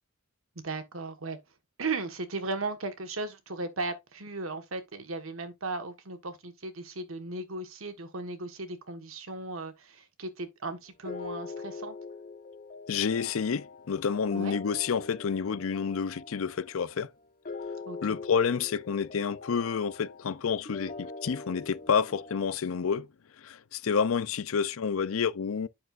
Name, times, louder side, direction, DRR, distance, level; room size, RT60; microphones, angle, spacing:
voice 1, 0.6-1.4 1.8-11.9 14.3-14.6 17.8-18.0, right 3 dB, 85° right, 1.5 m, -36 dB
sound 1, 11.0-22.5, left 3 dB, 40° left, 1.0 m, -43 dB
voice 2, 12.9-17.1 18.0-23.1 23.4-25.7, left 6 dB, 80° left, 0.5 m, -29 dB
8.8 x 6.5 x 2.5 m
head